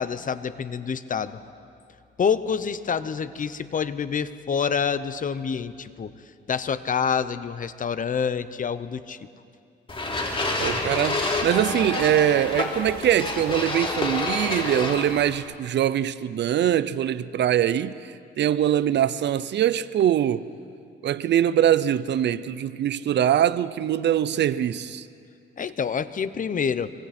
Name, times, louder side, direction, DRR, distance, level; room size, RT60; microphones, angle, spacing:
voice 1, 0.0-1.4 2.2-6.1 6.5-9.3 25.6-26.9, left 6 dB, 40° left, 0.9 m, -27 dB
sound 1, 9.9-15.4, left 2 dB, 25° left, 3.2 m, -28 dB
voice 2, 10.6-20.5 21.0-25.1, right 10 dB, 60° right, 0.6 m, -23 dB
25.5 x 25.0 x 4.4 m
cardioid pair, 90°, 20 cm